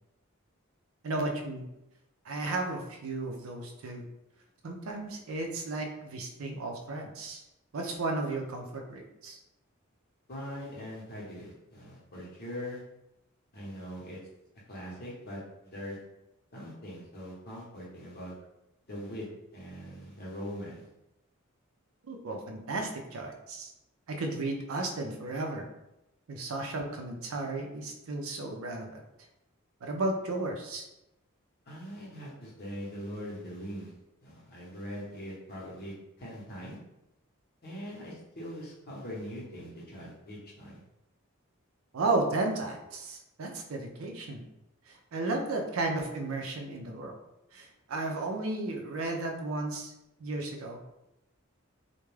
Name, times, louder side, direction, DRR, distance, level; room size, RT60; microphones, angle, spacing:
voice 1, 1.0-1.7 2.3-4.0 4.6-7.4 7.7-9.4 22.0-23.7 24.1-25.7 26.3-29.0 29.8-30.8 41.9-44.4 44.9-47.1 47.5-49.9 50.2-50.8, right 2 dB, 75° right, 3 dB, 0.5 m, -34 dB
voice 2, 10.3-12.8 13.5-14.2 14.7-16.0 16.5-18.3 18.9-20.9 31.7-33.9 34.2-36.8 37.6-40.8, equal, 50° left, -5 dB, 0.8 m, -42 dB
2.3 x 2.1 x 3.1 m, 0.89 s
head